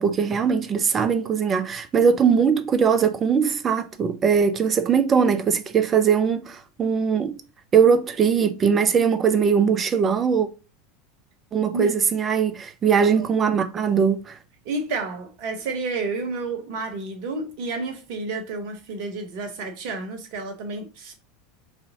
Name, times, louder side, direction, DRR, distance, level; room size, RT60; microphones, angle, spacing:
voice 1, 0.0-7.3 7.7-10.5 11.5-14.3, right 6 dB, 30° right, 0.5 m, -20 dB
voice 2, 14.6-21.1, right 3 dB, 55° right, 0.9 m, -30 dB
4.1 x 2.7 x 2.7 m
figure-of-eight pair, 80°, 0 cm